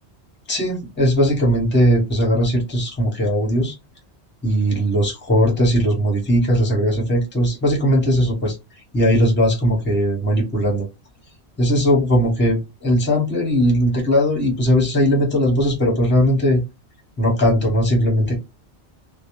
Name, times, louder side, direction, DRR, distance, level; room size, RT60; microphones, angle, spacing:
voice 1, 0.5-3.8 4.4-8.6 8.9-10.8 11.6-16.6 17.2-18.4, equal, 10° left, -1 dB, 0.8 m, -18 dB
2.2 x 2.1 x 2.9 m, 0.24 s
omnidirectional pair, 1.1 m